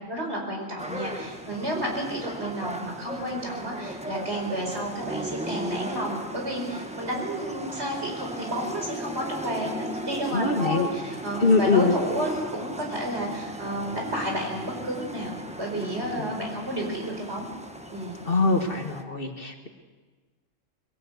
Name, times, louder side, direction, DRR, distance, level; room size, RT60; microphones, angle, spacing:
voice 1, 0.1-17.5 17.9-18.2, right 1 dB, 55° right, 0 dB, 5.1 m, -31 dB
sound 1, 0.8-19.0, right 1 dB, 5° right, 1.1 m, -36 dB
voice 2, 10.3-10.9 11.4-11.9 16.2-16.3 18.3-19.7, left 3 dB, 45° left, 4 dB, 1.7 m, -23 dB
22.0 x 16.5 x 8.0 m, 1.3 s
omnidirectional pair, 1.4 m